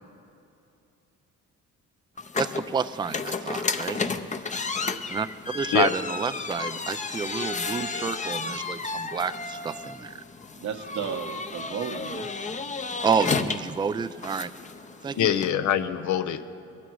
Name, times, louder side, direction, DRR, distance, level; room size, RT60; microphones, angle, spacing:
sound 1, 2.2-15.5, left 4 dB, 25° left, 0.7 m, -32 dB
voice 1, 2.4-4.0 4.4-5.3 5.5-10.2 13.0-14.5 15.0-15.3, right 6 dB, 15° right, 13 dB, 0.4 m, -29 dB
voice 2, 10.6-12.3 15.0-15.4, right 7 dB, 70° right, 5 dB, 1.2 m, -34 dB
voice 3, 15.2-16.4, left 10 dB, 70° left, 10 dB, 0.8 m, -24 dB
21.0 x 12.5 x 4.7 m, 2.7 s
cardioid pair, 90°, 30 cm